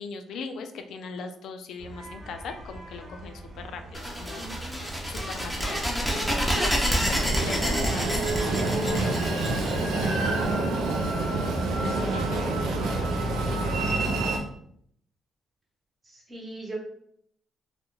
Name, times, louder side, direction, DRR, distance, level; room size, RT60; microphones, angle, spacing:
voice 1, 0.0-4.5 5.0-6.4 6.6-10.7 11.8-12.4 13.5-14.1, left 5 dB, 75° left, 6 dB, 0.3 m, -39 dB
sound 1, 1.8-13.7, right 2 dB, 60° right, 0.9 m, -44 dB
sound 2, 3.9-10.5, equal, ahead, 0.6 m, -28 dB
voice 2, 4.3-4.8 16.3-16.8, right 2 dB, 25° right, -2 dB, 0.9 m, -38 dB
Train, 7.0-14.4, right 2 dB, 85° right, 0.4 m, -27 dB
2.3 x 2.1 x 3.0 m, 0.68 s
cardioid pair, 90°, 0 cm